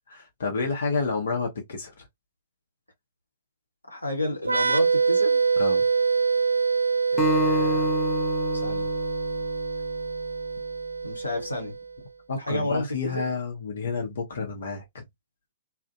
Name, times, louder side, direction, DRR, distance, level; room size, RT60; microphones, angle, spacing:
voice 1, 0.2-2.1 5.6-5.8 12.3-15.0, left 4 dB, 60° left, 0.8 m, -30 dB
voice 2, 3.9-5.4 7.1-7.9 8.5-8.9 11.0-11.8 12.4-13.2, left 1 dB, 85° left, 0.8 m, -31 dB
sound 1, 4.4-11.9, right 5 dB, 80° right, 0.4 m, -25 dB
Acoustic guitar, 7.2-10.5, right 1 dB, 15° left, 0.7 m, -29 dB
2.5 x 2.1 x 2.5 m
figure-of-eight pair, 110°, 0 cm